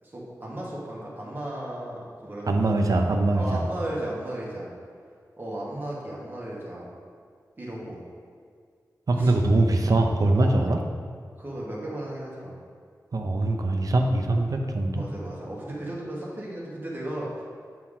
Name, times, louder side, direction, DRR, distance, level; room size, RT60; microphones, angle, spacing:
voice 1, 0.0-2.8 3.3-4.7 5.4-6.9 7.6-8.0 9.2-9.3 10.4-10.5 11.4-12.5 14.9-17.4, right 1 dB, 30° right, -5 dB, 1.7 m, -35 dB
voice 2, 2.5-3.6 9.1-10.8 13.1-15.0, right 2 dB, 60° right, 3 dB, 0.6 m, -22 dB
8.4 x 4.5 x 3.8 m, 2.1 s
wide cardioid pair, 110°, 7 cm